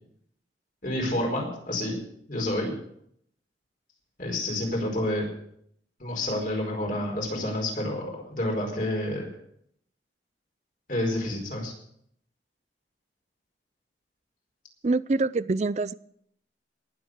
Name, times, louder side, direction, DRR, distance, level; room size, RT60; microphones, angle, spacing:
voice 1, 0.8-2.0 2.3-2.7 4.2-5.3 6.0-9.3 10.9-11.7, left 1 dB, 50° left, 0 dB, 4.7 m, -29 dB
voice 2, 14.8-15.9, right 3 dB, 40° right, 18 dB, 0.4 m, -25 dB
19.0 x 7.6 x 6.5 m, 0.70 s
head